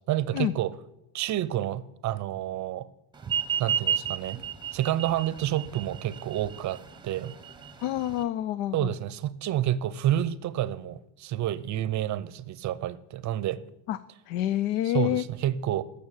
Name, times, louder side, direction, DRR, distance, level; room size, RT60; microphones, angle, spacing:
voice 1, 0.1-0.7 1.1-2.9 3.6-4.4 4.7-7.3 8.7-13.6 14.8-15.8, right 12 dB, 40° right, 18 dB, 0.6 m, -29 dB
sound 1, 3.2-8.2, right 8 dB, 10° right, 0.9 m, -31 dB
voice 2, 7.8-8.9 13.9-14.0 14.3-15.2, left 13 dB, 80° left, 16 dB, 0.7 m, -27 dB
12.0 x 6.9 x 8.9 m, 0.86 s
cardioid pair, 135°, 47 cm